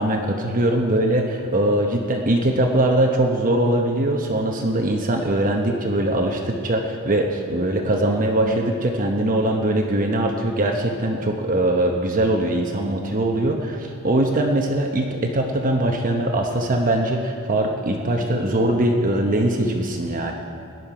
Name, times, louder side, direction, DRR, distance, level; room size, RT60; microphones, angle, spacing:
voice 1, 0.0-20.3, right 1 dB, 40° right, 2 dB, 0.9 m, -21 dB
17.5 x 11.0 x 4.9 m, 2.5 s
head